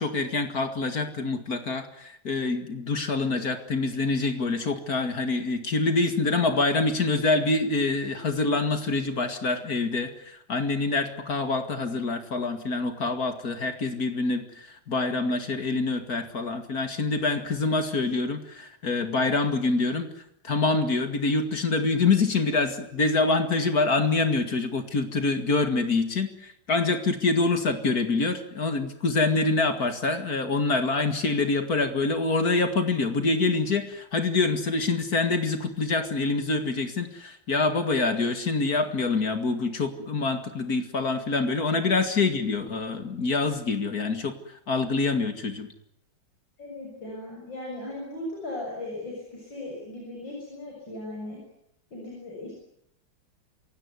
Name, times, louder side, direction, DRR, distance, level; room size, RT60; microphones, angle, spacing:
voice 1, 0.0-20.1 20.4-45.7, left 3 dB, 50° left, 8 dB, 2.4 m, -26 dB
voice 2, 46.6-51.4 51.9-52.5, left 1 dB, 75° left, -2 dB, 7.9 m, -37 dB
27.0 x 17.0 x 9.7 m, 0.77 s
omnidirectional pair, 2.0 m